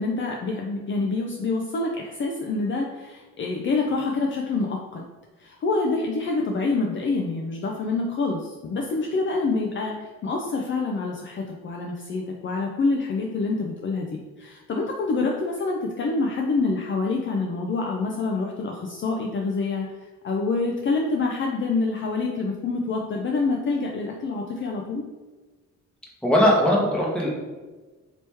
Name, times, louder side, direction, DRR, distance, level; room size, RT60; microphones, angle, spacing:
voice 1, 0.0-5.0 5.4-14.1 14.4-19.9 20.2-25.0, left 3 dB, 40° left, 0 dB, 0.4 m, -26 dB
voice 2, 26.2-27.3, equal, 5° left, -3 dB, 1.0 m, -19 dB
2.9 x 2.9 x 3.4 m, 1.3 s
cardioid pair, 90°, 30 cm